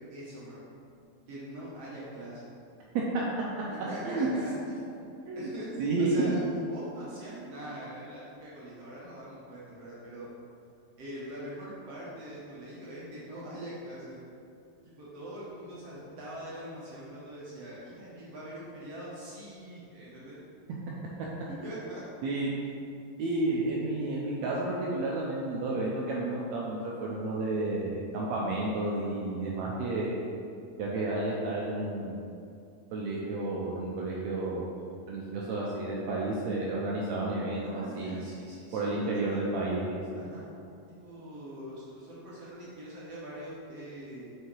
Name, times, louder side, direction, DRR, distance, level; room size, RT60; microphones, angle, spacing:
voice 1, 0.1-0.6 1.3-2.5 3.9-5.1 5.4-10.3 11.0-14.2 14.8-20.4 21.6-22.0 37.6-39.4 40.1-40.5 41.0-44.4, right 1 dB, 60° right, -8 dB, 1.9 m, -43 dB
voice 2, 5.8-6.1 22.2-22.5 23.2-30.1 30.8-32.2 32.9-34.7 35.1-38.2 38.7-40.0, right 2 dB, 85° right, -4 dB, 1.5 m, -31 dB
6.5 x 5.8 x 4.6 m, 2.5 s
omnidirectional pair, 4.1 m